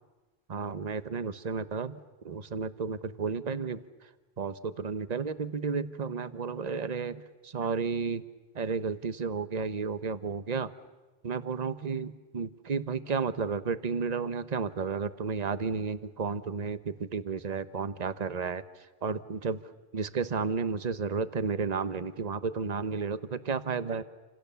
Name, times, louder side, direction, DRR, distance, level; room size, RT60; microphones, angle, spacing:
voice 1, 0.5-2.0 2.2-3.8 4.4-8.2 8.5-10.7 11.2-18.6 19.0-19.6 19.9-24.0, right 5 dB, 40° right, 13 dB, 1.0 m, -32 dB
29.0 x 27.0 x 7.0 m, 1.2 s
omnidirectional pair, 1.1 m